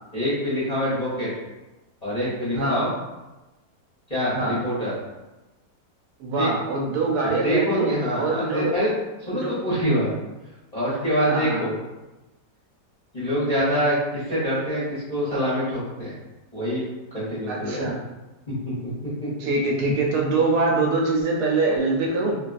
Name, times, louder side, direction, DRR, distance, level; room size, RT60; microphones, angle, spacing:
voice 1, 0.1-1.3 2.0-2.9 4.1-4.9 6.4-6.5 7.2-8.9 9.2-10.1 10.7-11.8 13.1-16.2 16.5-16.8 17.1-17.9 18.5-18.8 19.2-19.3, equal, 35° left, -10 dB, 0.6 m, -25 dB
voice 2, 6.2-8.7 9.3-9.5 10.9-11.6 13.6-13.8 14.3-14.4 17.5-18.0 19.4-22.4, right 3 dB, 75° right, -2 dB, 1.0 m, -24 dB
2.8 x 2.3 x 2.4 m, 1.1 s
omnidirectional pair, 1.8 m